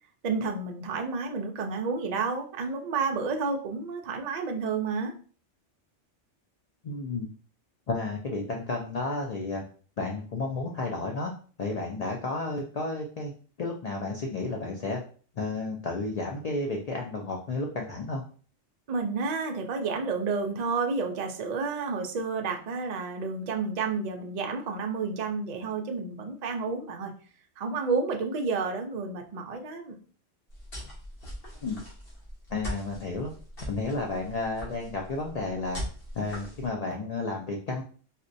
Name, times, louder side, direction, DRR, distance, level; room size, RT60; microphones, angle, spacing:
voice 1, 0.2-5.1 18.9-27.1 27.6-30.0, right 4 dB, 55° right, 3 dB, 0.4 m, -30 dB
voice 2, 6.8-7.3 7.9-9.6 10.0-11.3 11.6-13.3 13.6-15.0 15.4-18.2 31.6-31.8 32.5-33.3 33.7-35.8 36.1-37.8, left 3 dB, 80° left, 1 dB, 0.3 m, -32 dB
sound 1, 30.5-36.7, equal, 50° left, 1.4 m, -41 dB
4.1 x 2.1 x 2.6 m, 0.42 s
omnidirectional pair, 1.2 m